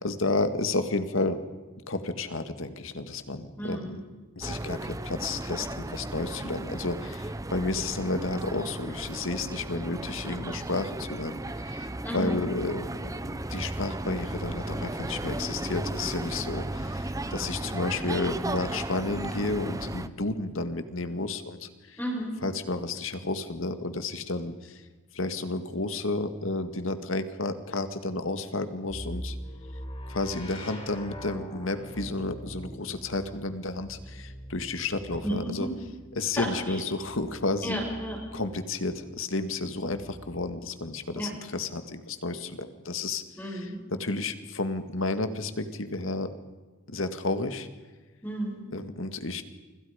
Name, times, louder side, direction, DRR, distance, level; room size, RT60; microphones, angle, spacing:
voice 1, 0.0-1.4 1.9-4.0 4.4-12.9 13.3-22.0 22.4-24.8 25.1-29.4 30.1-35.7 36.1-37.8 38.3-46.3 46.9-47.7 48.7-49.4, left 2 dB, 75° left, 9 dB, 2.0 m, -31 dB
voice 2, 3.6-4.0 12.0-12.4 22.0-22.3 35.2-35.7 36.4-36.8 37.6-38.2 41.1-41.3 43.4-43.8 48.2-48.6, right 1 dB, 10° left, -2 dB, 7.1 m, -32 dB
sound 1, 4.4-20.1, right 1 dB, 15° right, 0.8 m, -35 dB
sound 2, 28.9-38.7 39.7-40.8, equal, 30° left, 4.3 m, -43 dB
29.0 x 26.0 x 5.2 m, 1.3 s
head